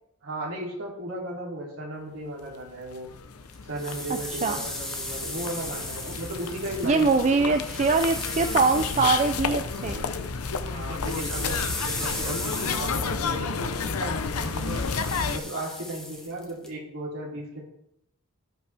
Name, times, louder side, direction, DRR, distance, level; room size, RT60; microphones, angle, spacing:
voice 1, 0.2-3.1 3.6-7.5 10.7-14.9 15.2-17.6, right 1 dB, 75° right, -3 dB, 3.0 m, -35 dB
sound 1, 2.6-2.7 2.9-15.4, left 5 dB, 80° left, 0.7 m, -31 dB
sound 2, 3.5-10.3 10.6-16.7, left 1 dB, 5° left, 1.6 m, -37 dB
voice 2, 6.8-10.0, right 4 dB, 35° right, 7 dB, 0.5 m, -23 dB
17.0 x 5.7 x 3.4 m, 0.77 s
head